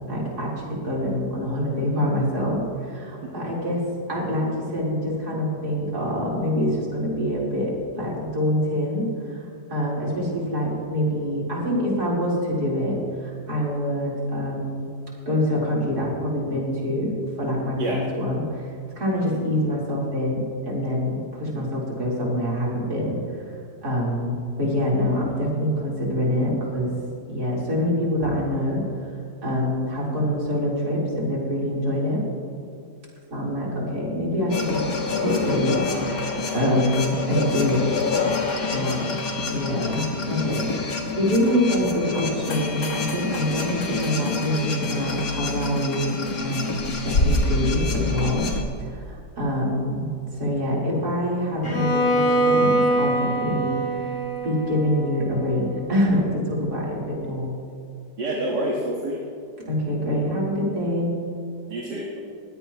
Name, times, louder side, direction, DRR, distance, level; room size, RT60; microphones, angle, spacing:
voice 1, 0.1-3.8 4.1-9.4 9.7-13.0 13.2-14.9 15.3-17.1 17.4-18.7 19.0-23.2 23.8-26.9 27.3-28.8 29.4-32.2 33.3-34.8 35.1-38.3 38.7-39.2 39.5-48.5 48.8-53.8 54.4-57.5 59.7-61.1, equal, 65° right, -5 dB, 4.7 m, -25 dB
sound 1, 34.5-48.6, left 4 dB, 60° left, 1.9 m, -27 dB
Bowed string instrument, 51.6-55.6, right 1 dB, 15° left, 3.4 m, -23 dB
voice 2, 58.2-59.2 61.7-62.2, right 1 dB, 85° right, -3 dB, 2.2 m, -27 dB
21.0 x 16.5 x 3.1 m, 2.4 s
omnidirectional pair, 1.8 m